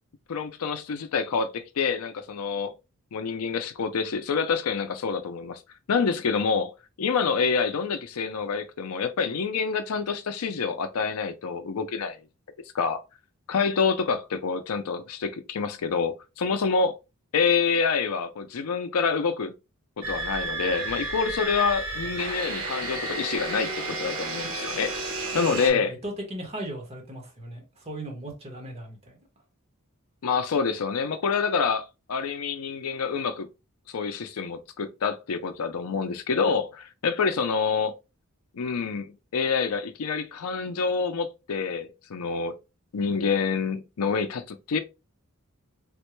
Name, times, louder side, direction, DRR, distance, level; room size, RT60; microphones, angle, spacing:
voice 1, 0.3-2.7 3.1-5.6 5.9-6.7 7.0-12.2 12.7-13.0 13.5-16.9 17.3-19.5 20.0-24.9 25.3-25.9 30.2-33.5 33.9-37.9 38.5-42.5 42.9-44.8, left 5 dB, 90° left, 0.5 m, -27 dB
sound 1, 20.0-25.7, right 2 dB, 90° right, 1.1 m, -32 dB
voice 2, 25.5-29.1, right 1 dB, 30° right, 1.1 m, -37 dB
3.5 x 2.2 x 3.0 m
head